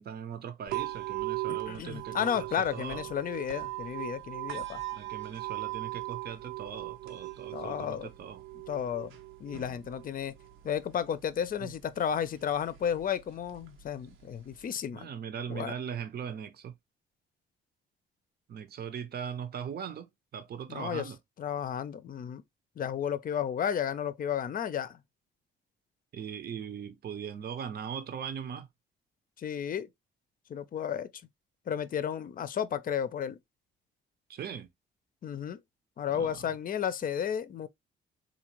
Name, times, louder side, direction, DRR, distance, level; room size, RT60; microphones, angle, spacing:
voice 1, 0.0-3.1 4.9-8.4 11.6-11.7 14.9-16.8 18.5-21.2 26.1-28.7 34.3-34.7 36.1-36.5, right 8 dB, 50° right, 0.7 m, -40 dB
sound 1, 0.7-14.7, right 18 dB, 80° right, 0.8 m, -40 dB
voice 2, 1.5-4.8 7.5-8.1 8.7-9.1 9.4-10.3 10.6-15.1 15.5-15.7 20.7-21.1 21.4-22.4 22.8-25.0 29.4-29.9 30.5-31.1 31.7-33.4 35.2-35.6 36.0-37.7, left 8 dB, 45° left, 0.6 m, -33 dB
4.1 x 2.5 x 3.0 m
cardioid pair, 90°, 20 cm